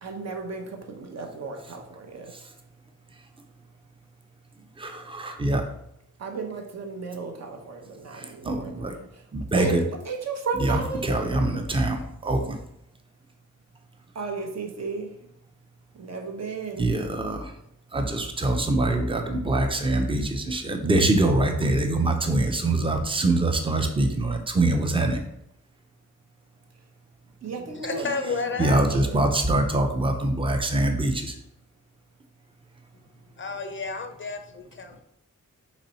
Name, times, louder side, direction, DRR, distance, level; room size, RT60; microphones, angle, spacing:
voice 1, 0.0-2.3 6.2-9.3 9.6-11.2 14.1-15.2 15.9-16.9 27.4-29.5, right 4 dB, 60° right, 0.7 m, -34 dB
voice 2, 4.8-5.6 8.1-9.0 9.3-9.8 10.6-12.6 16.8-17.5 17.9-25.2 28.6-31.4, right 2 dB, 20° right, 0.5 m, -24 dB
voice 3, 27.8-28.8 33.4-35.0, left 4 dB, 40° left, 0.4 m, -31 dB
4.1 x 3.1 x 4.1 m
wide cardioid pair, 160°, 30 cm